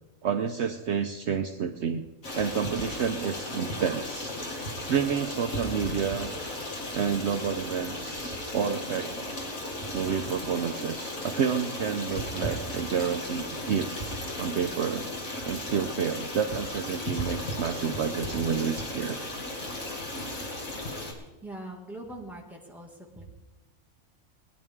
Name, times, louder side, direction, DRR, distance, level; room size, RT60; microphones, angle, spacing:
voice 1, 0.2-2.1 2.3-4.4 4.7-6.3 6.9-9.1 9.9-13.9 14.4-15.1 15.4-19.2, right 7 dB, 60° right, 6 dB, 0.9 m, -29 dB
Stream, 2.2-21.1, left 1 dB, 80° left, 2.6 m, -35 dB
voice 2, 21.4-23.2, right 1 dB, ahead, -2 dB, 2.0 m, -42 dB
20.5 x 10.5 x 3.6 m, 1.1 s
omnidirectional pair, 1.4 m